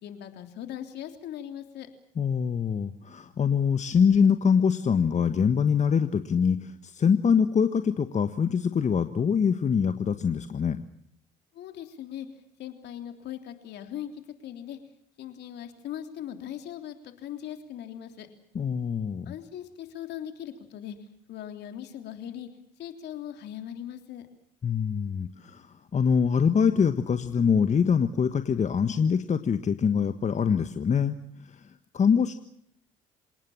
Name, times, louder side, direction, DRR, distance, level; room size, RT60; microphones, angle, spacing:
voice 1, 0.0-1.9 11.5-12.3 12.6-14.8 15.2-18.3 19.2-21.0 21.3-22.5 22.8-24.3, left 10 dB, 65° left, 6 dB, 3.4 m, -39 dB
voice 2, 2.2-10.8 18.5-19.3 24.6-25.7 25.9-31.6 31.9-32.3, left 6 dB, 40° left, 9 dB, 1.5 m, -24 dB
27.5 x 18.5 x 7.4 m, 0.69 s
hypercardioid pair, 60°, 19 cm